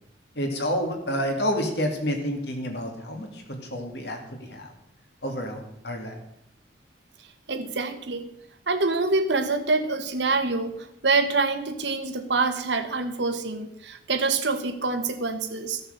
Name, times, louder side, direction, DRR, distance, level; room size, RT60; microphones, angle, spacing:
voice 1, 0.4-4.7 5.2-6.2, equal, 65° left, 3 dB, 2.3 m, -29 dB
voice 2, 7.5-8.2 8.7-10.8 11.0-15.8, right 3 dB, 75° right, 7 dB, 1.3 m, -26 dB
14.5 x 6.7 x 6.6 m, 0.80 s
head